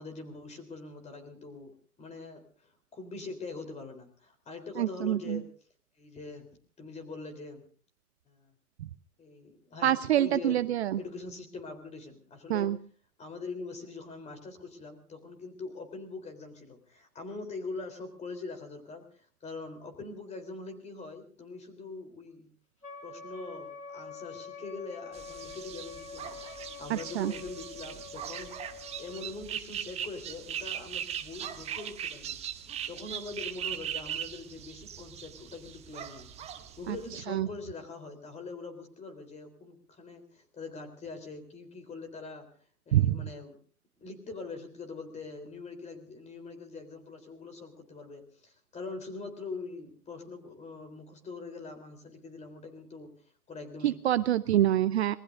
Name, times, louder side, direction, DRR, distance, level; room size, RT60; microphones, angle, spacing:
voice 1, 0.0-1.7 2.0-5.5 6.0-6.5 6.8-7.6 8.3-8.5 9.2-12.7 13.2-22.5 23.0-32.4 32.9-36.3 36.5-42.5 42.9-43.6 44.0-53.1 53.5-54.2, left 3 dB, 15° left, 7 dB, 3.7 m, -43 dB
voice 2, 4.8-5.2 9.8-10.8 12.5-12.7 27.2-27.3 37.4-37.5 42.9-43.1 53.8-55.2, right 12 dB, 45° right, 15 dB, 0.7 m, -25 dB
Wind instrument woodwind instrument, 22.8-29.4, left 5 dB, 85° left, 4.2 m, -46 dB
sound 1, 25.1-37.2, right 9 dB, 15° right, 0.9 m, -40 dB
26.5 x 20.5 x 2.6 m, 0.42 s
figure-of-eight pair, 115°, 44 cm